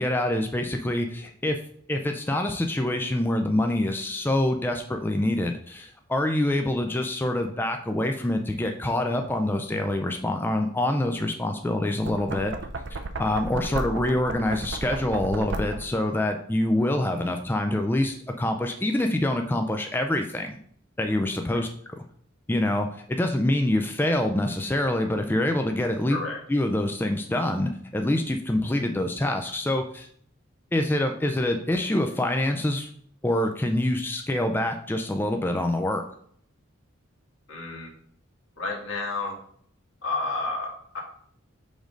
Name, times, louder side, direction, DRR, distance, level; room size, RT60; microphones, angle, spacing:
voice 1, 0.0-1.6 1.9-12.5 12.9-20.6 21.0-22.0 22.5-26.2 26.5-30.1 30.7-32.9 33.2-36.0, left 1 dB, 10° left, 4 dB, 0.4 m, -26 dB
Knock, 11.9-16.0, right 2 dB, 60° right, 0.5 m, -34 dB
voice 2, 26.1-26.4 37.5-37.9 38.6-39.4 40.0-41.0, left 3 dB, 75° left, 0 dB, 1.6 m, -31 dB
5.1 x 3.8 x 5.1 m, 0.62 s
head